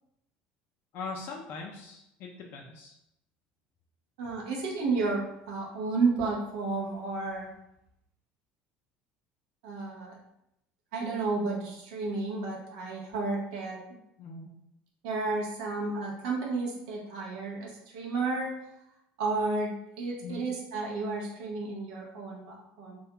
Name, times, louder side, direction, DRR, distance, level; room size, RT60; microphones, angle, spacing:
voice 1, 0.9-2.9 14.2-14.5 20.2-20.4, left 4 dB, 55° left, 0 dB, 0.4 m, -41 dB
voice 2, 4.2-7.5 9.6-10.2 10.9-13.8 15.0-18.5 19.2-23.0, right 3 dB, 90° right, -2 dB, 0.6 m, -32 dB
2.2 x 2.1 x 2.8 m, 0.80 s
supercardioid pair, 115°, 4 cm